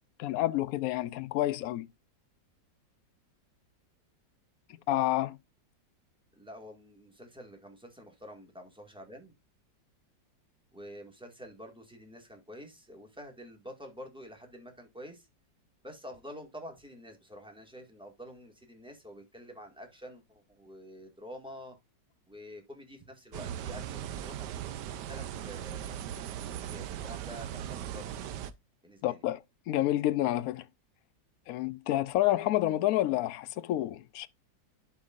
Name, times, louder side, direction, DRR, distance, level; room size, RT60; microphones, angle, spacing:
voice 1, 0.2-1.9 4.9-5.4 29.0-29.4 29.7-30.7 31.5-34.3, left 14 dB, 75° left, 0.8 m, -29 dB
voice 2, 6.4-9.3 10.7-15.3 15.8-21.8 22.3-26.0 26.7-28.2 28.8-29.2, equal, 5° right, 1.7 m, -48 dB
sound 1, 23.3-28.5, right 10 dB, 70° right, 1.2 m, -39 dB
11.5 x 4.7 x 2.4 m
omnidirectional pair, 2.0 m